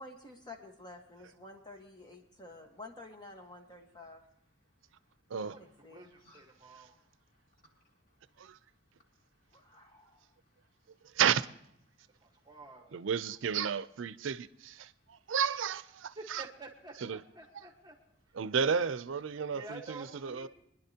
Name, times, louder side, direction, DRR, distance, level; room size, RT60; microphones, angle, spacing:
voice 1, 0.0-4.2 5.4-6.1 9.5-10.2, left 2 dB, 20° left, 1.3 m, -50 dB
voice 2, 5.5-6.9 12.2-13.0 16.2-17.9 19.5-20.5, right 3 dB, 20° right, 1.3 m, -49 dB
voice 3, 6.1-7.1 7.7-8.7 9.0-11.0 11.9-12.5, left 1 dB, 45° left, 3.4 m, -70 dB
voice 4, 11.1-11.5 12.9-16.4 17.0-17.2 18.4-20.5, right 7 dB, 90° right, 0.5 m, -32 dB
24.5 x 10.5 x 2.8 m
head